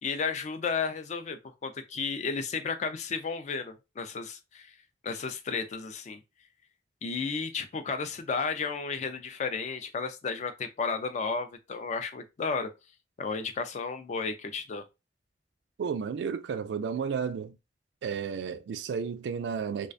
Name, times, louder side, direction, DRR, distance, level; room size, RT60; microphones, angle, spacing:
voice 1, 0.0-4.7 5.0-6.2 7.0-12.7 13.2-14.8, left 5 dB, 40° left, 0.3 m, -33 dB
voice 2, 15.8-17.5 18.0-19.9, right 6 dB, 80° right, 0.3 m, -32 dB
2.3 x 2.2 x 2.4 m
head